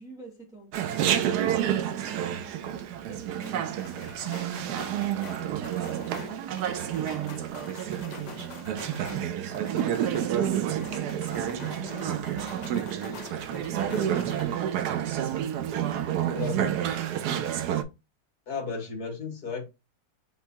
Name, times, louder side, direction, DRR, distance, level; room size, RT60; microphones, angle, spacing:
voice 1, 0.0-2.8 3.1-5.2 16.3-16.8, right 3 dB, ahead, 1.4 m, -48 dB
Chatter, 0.7-17.8, right 10 dB, 75° right, 1.1 m, -29 dB
sound 1, 3.4-14.4, left 6 dB, 80° left, 1.5 m, -45 dB
voice 2, 16.3-16.7 18.5-19.6, left 5 dB, 65° left, 2.1 m, -34 dB
5.3 x 3.1 x 2.8 m
omnidirectional pair, 1.8 m